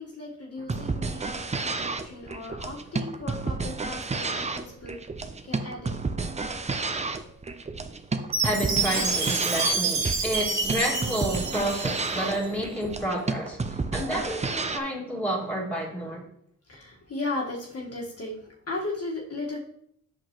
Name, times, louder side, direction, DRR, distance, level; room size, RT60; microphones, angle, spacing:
voice 1, 0.0-5.0 5.4-6.0 16.7-19.6, left 2 dB, 50° left, 1.5 m, -36 dB
sound 1, 0.6-14.8, right 3 dB, 20° right, 0.5 m, -31 dB
Chime, 8.3-12.5, right 4 dB, 60° right, 1.4 m, -28 dB
voice 2, 8.4-16.2, right 1 dB, 5° left, 2.0 m, -30 dB
7.7 x 5.8 x 3.0 m
cardioid pair, 85°, 32 cm